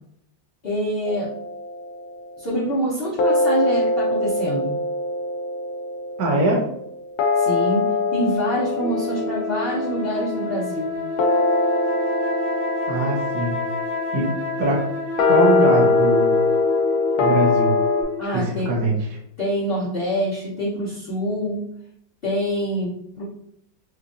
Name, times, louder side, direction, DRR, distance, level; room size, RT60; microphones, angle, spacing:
voice 1, 0.6-1.3 2.4-4.8 7.4-11.0 18.2-18.7 19.4-21.7 22.2-23.2, equal, 40° left, -10 dB, 0.9 m, -26 dB
sound 1, 1.1-2.4 3.2-18.0, left 3 dB, 75° left, 0.9 m, -23 dB
voice 2, 6.2-6.6 12.9-13.5 14.1-14.9 15.3-16.4 17.2-17.7 18.3-19.0, right 2 dB, 60° right, -3 dB, 1.3 m, -22 dB
sound 2, 8.8-18.5, left 2 dB, 40° right, 1.3 m, -30 dB
4.4 x 2.5 x 2.5 m, 0.72 s
omnidirectional pair, 2.1 m